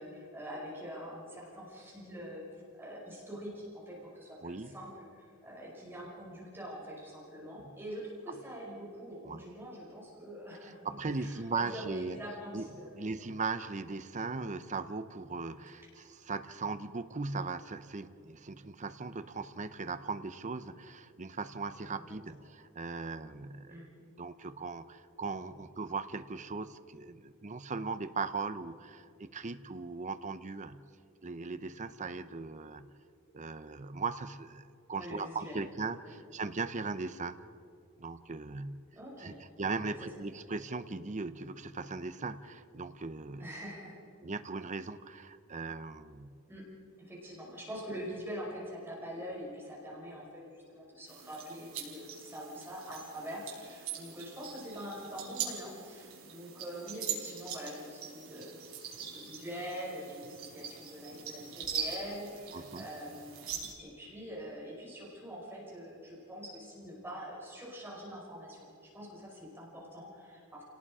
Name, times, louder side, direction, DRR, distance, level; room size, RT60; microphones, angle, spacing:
voice 1, 0.0-10.8 11.1-12.9 21.9-22.4 23.7-24.1 34.9-35.6 36.0-36.1 38.9-39.4 39.8-40.0 43.4-44.0 46.5-46.6 47.1-58.6 59.0-68.7 68.9-70.6, equal, 10° right, -5 dB, 5.5 m, -44 dB
voice 2, 4.4-4.7 9.3-9.4 10.6-12.2 12.5-23.9 24.2-30.8 31.2-32.9 33.3-37.4 38.0-38.8 39.2-43.5 44.2-46.3 62.5-62.9, right 4 dB, 35° right, 11 dB, 0.7 m, -38 dB
sound 1, 51.1-63.7, right 7 dB, 70° right, 4.9 m, -42 dB
29.5 x 18.5 x 4.9 m, 2.5 s
head